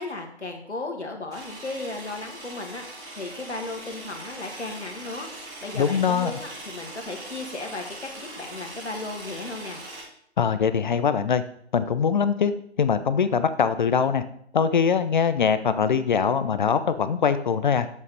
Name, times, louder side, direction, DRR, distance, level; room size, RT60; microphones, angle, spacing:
voice 1, 0.0-5.3 5.6-9.8, left 2 dB, 80° left, 3 dB, 1.8 m, -35 dB
sound 1, 1.3-10.0, right 1 dB, 10° right, 3.5 m, -41 dB
voice 2, 5.8-6.3 10.4-11.4 11.7-12.5 12.8-14.2 14.5-17.9, left 6 dB, 45° left, 12 dB, 0.5 m, -22 dB
7.5 x 7.2 x 4.0 m, 0.66 s
figure-of-eight pair, 135°, 34 cm